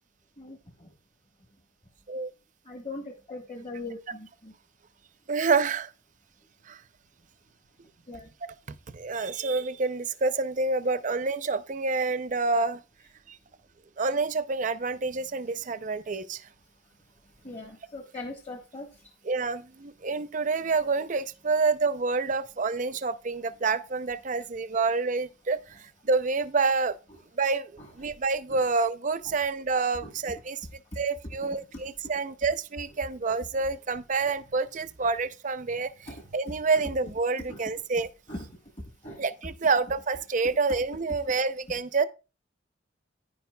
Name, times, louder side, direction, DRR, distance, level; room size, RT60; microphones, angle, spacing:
voice 1, 0.4-0.9 2.7-4.5 8.1-8.3 17.4-18.9 27.8-27.9 28.5-28.6 30.0-30.1 31.4-31.6 36.1-36.2 37.5-37.6 38.3-38.5 39.0-39.2, left 2 dB, 35° left, 1.2 m, -40 dB
voice 2, 5.3-5.9 6.7-6.8 8.9-12.8 13.3-13.4 14.0-16.4 19.2-27.0 27.4-30.6 31.0-38.1 39.2-42.1, right 4 dB, 40° right, 0.5 m, -28 dB
10.0 x 9.8 x 2.3 m
head